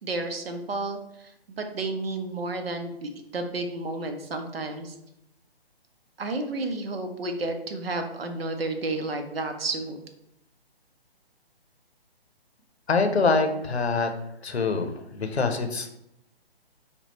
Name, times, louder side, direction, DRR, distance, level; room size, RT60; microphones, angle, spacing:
voice 1, 0.0-4.9 6.2-10.0, right 2 dB, 65° right, 6 dB, 0.9 m, -31 dB
voice 2, 12.9-14.1 14.4-15.9, left 4 dB, 90° left, 6 dB, 0.8 m, -25 dB
5.3 x 2.3 x 4.1 m, 0.79 s
figure-of-eight pair, 145°, 31 cm